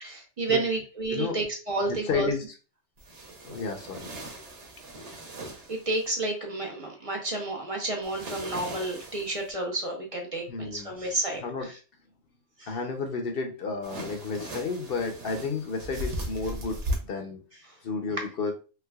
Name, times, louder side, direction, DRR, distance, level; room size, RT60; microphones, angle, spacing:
voice 1, 0.0-2.3 5.7-11.7 12.6-12.7, right 2 dB, 35° right, 1 dB, 0.8 m, -31 dB
voice 2, 1.9-2.4 3.4-4.1 10.5-10.9 11.4-11.7 12.7-17.4 17.8-18.5, left 4 dB, 55° left, 5 dB, 0.8 m, -32 dB
sound 1, 3.0-6.1 8.0-9.5 13.8-16.9, right 1 dB, 75° right, 1.3 m, -38 dB
3.3 x 3.1 x 2.3 m, 0.35 s
omnidirectional pair, 1.2 m